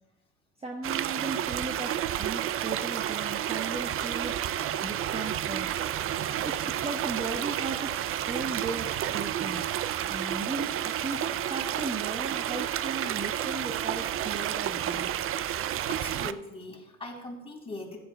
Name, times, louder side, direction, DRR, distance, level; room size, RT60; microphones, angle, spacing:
voice 1, 0.6-5.7 6.4-9.6 10.1-15.1, right 3 dB, 15° right, 1 dB, 1.1 m, -37 dB
sound 1, 0.8-16.3, right 11 dB, 40° right, 0.5 m, -31 dB
voice 2, 15.8-18.0, left 2 dB, 15° left, -1 dB, 3.7 m, -40 dB
15.0 x 11.5 x 2.3 m, 1.0 s
supercardioid pair, 85°, 35 cm